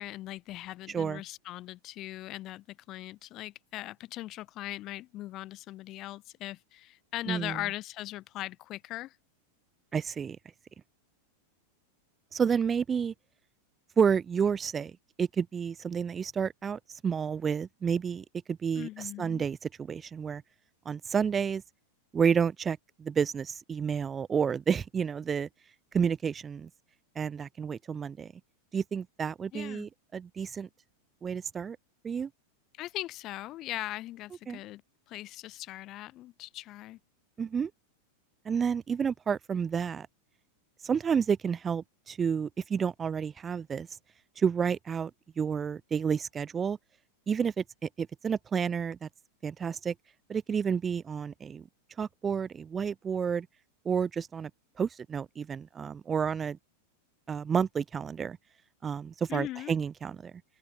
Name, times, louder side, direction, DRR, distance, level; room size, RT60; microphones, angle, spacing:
voice 1, 0.0-9.1 18.7-19.5 29.5-29.9 32.8-34.8 35.1-37.0 59.3-59.7, left 16 dB, 35° left, 0.4 m, -40 dB
voice 2, 0.9-1.2 7.3-7.6 9.9-10.4 12.3-13.1 14.0-14.9 15.2-20.4 20.9-21.6 22.1-25.5 25.9-26.7 27.2-28.3 28.7-30.7 31.2-31.8 32.0-32.3 34.5-34.6 37.4-37.7 38.5-40.1 40.8-43.9 44.4-45.1 45.4-46.8 47.3-49.1 49.4-49.9 50.3-51.7 52.0-53.5 53.9-54.5 54.8-56.6 57.3-58.4 58.8-60.3, right 7 dB, 20° right, 0.5 m, -30 dB
open air
figure-of-eight pair, 90°, 0 cm